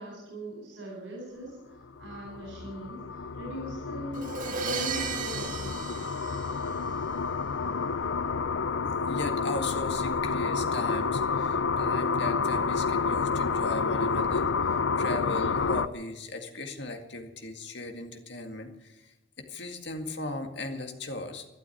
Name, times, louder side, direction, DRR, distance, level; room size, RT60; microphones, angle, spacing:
voice 1, 0.0-6.1, right 1 dB, 85° right, -2 dB, 4.5 m, -41 dB
sound 1, 1.8-15.9, left 5 dB, 80° left, 0.6 m, -29 dB
Crash cymbal, 4.1-7.1, right 5 dB, 45° right, 2.0 m, -35 dB
voice 2, 9.0-21.5, left 2 dB, 60° left, 5 dB, 2.0 m, -37 dB
12.5 x 12.0 x 9.4 m, 0.96 s
head